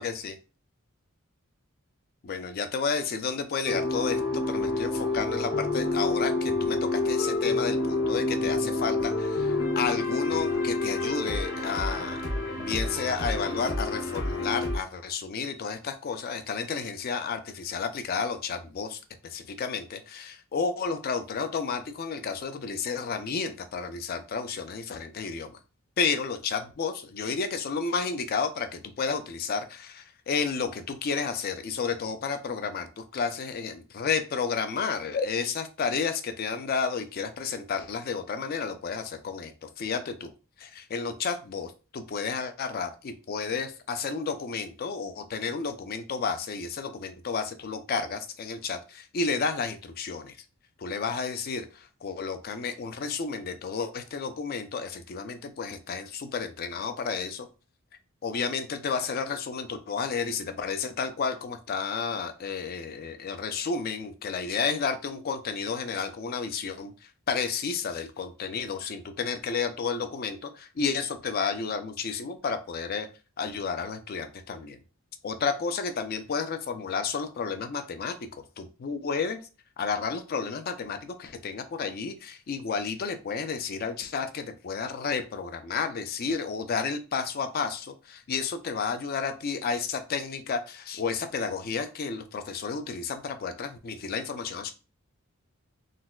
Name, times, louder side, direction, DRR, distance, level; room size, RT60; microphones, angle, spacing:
voice 1, 0.0-0.3 2.2-12.2 12.6-25.6 26.0-40.3 40.6-50.4 50.8-57.5 58.2-66.9 67.3-73.1 73.4-74.8 75.2-78.2 78.6-79.4 79.8-94.7, left 5 dB, 45° left, 8 dB, 0.4 m, -31 dB
sound 1, 3.7-14.8, left 2 dB, 65° left, 1.5 m, -28 dB
3.9 x 2.1 x 2.3 m, 0.34 s
head